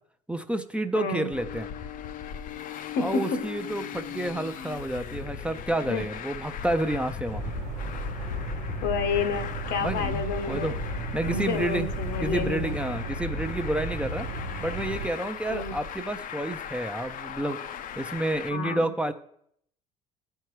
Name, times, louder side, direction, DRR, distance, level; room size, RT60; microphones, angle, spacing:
voice 1, 0.3-1.7 3.0-7.4 9.8-10.8 11.1-11.9 12.2-14.3 14.6-17.6 18.0-19.1, right 1 dB, 5° right, 8 dB, 0.5 m, -30 dB
voice 2, 0.9-1.3 3.0-3.4 5.9-6.0 8.8-10.8 11.3-12.7 15.5-15.8 18.5-18.9, left 4 dB, 70° left, 9 dB, 0.8 m, -30 dB
Traffic noise roadway noise, 1.3-18.5, left 8 dB, 50° left, 0.5 m, -38 dB
sound 1, 7.3-15.1, right 2 dB, 85° right, 1.0 m, -34 dB
13.0 x 4.6 x 3.1 m, 0.70 s
supercardioid pair, 80°, 18 cm